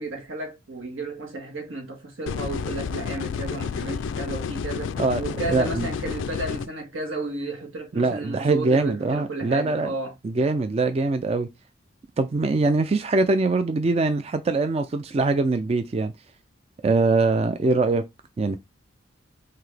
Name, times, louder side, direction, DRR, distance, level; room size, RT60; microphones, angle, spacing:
voice 1, 0.0-10.1, right 2 dB, 80° right, 1.6 m, -33 dB
sound 1, 2.3-6.7, left 6 dB, 70° left, 0.3 m, -30 dB
voice 2, 5.5-5.9 8.0-9.9 10.2-11.5 12.2-16.1 16.8-18.1 18.4-18.6, right 3 dB, 30° right, 0.3 m, -22 dB
5.8 x 2.8 x 3.3 m
head